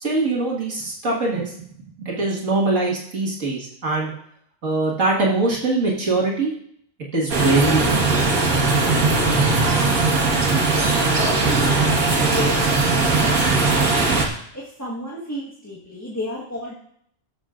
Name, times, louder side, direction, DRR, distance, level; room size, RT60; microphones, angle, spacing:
voice 1, 0.0-1.5 2.0-4.1 4.6-6.5 7.1-8.1, right 3 dB, 65° right, -4 dB, 2.2 m, -22 dB
sound 1, 7.3-14.3, right 3 dB, 90° right, 2.0 m, -19 dB
voice 2, 9.5-12.6 14.5-16.7, left 1 dB, 10° left, -5 dB, 1.4 m, -33 dB
18.0 x 7.2 x 2.5 m, 0.68 s
omnidirectional pair, 1.4 m